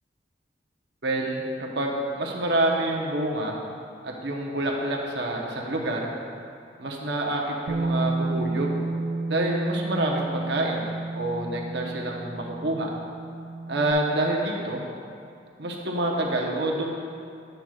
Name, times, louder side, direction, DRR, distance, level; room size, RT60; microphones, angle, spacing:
voice 1, 1.0-3.6 4.0-6.1 6.8-8.8 9.3-12.9 13.7-14.8 15.6-16.9, right 1 dB, 75° right, -1 dB, 1.0 m, -27 dB
Bass guitar, 7.7-13.9, right 2 dB, 55° right, 0.4 m, -31 dB
8.9 x 7.9 x 2.4 m, 2.5 s
head